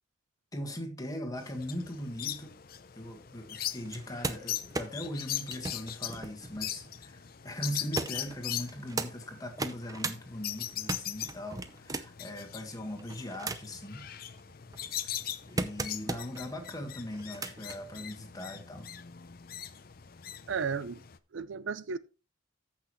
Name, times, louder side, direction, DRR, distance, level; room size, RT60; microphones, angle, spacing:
voice 1, 0.5-2.5 2.9-14.0 15.0-15.1 15.5-18.9, equal, 20° left, 1.6 m, -40 dB
sound 1, 1.4-21.2, left 11 dB, 50° left, 0.6 m, -41 dB
sound 2, 3.8-7.2 7.9-9.1 9.5-10.2 10.6-12.3 12.9-13.8 14.4-16.4 17.1-17.8 18.8-18.9, right 3 dB, 20° right, 0.6 m, -37 dB
voice 2, 20.5-21.0 21.3-22.0, right 5 dB, 75° right, 0.5 m, -34 dB
14.0 x 5.9 x 3.1 m
head